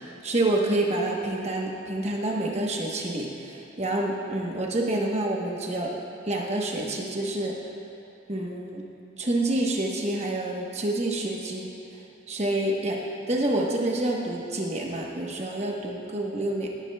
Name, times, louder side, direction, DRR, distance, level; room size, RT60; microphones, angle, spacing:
voice 1, 0.0-5.9 6.2-7.6 8.3-8.8 9.2-11.7 12.3-13.0 13.3-16.7, right 1 dB, 30° right, -1 dB, 1.0 m, -28 dB
17.0 x 9.7 x 2.3 m, 2.9 s
head